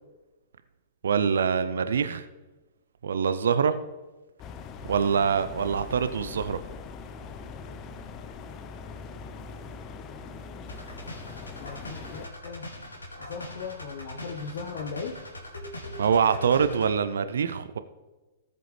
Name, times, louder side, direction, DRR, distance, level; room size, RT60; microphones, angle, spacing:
voice 1, 1.0-2.2 3.0-3.7 4.9-6.6 16.0-17.8, right 6 dB, 70° right, 11 dB, 0.6 m, -24 dB
sound 1, 4.4-12.3, left 4 dB, 35° left, 0.8 m, -42 dB
sound 2, 10.7-16.9, left 1 dB, 85° left, 2.4 m, -41 dB
voice 2, 11.6-12.7 13.2-15.2, left 5 dB, 60° left, 3 dB, 1.0 m, -38 dB
18.0 x 7.7 x 3.3 m, 1.2 s
figure-of-eight pair, 105°, 0 cm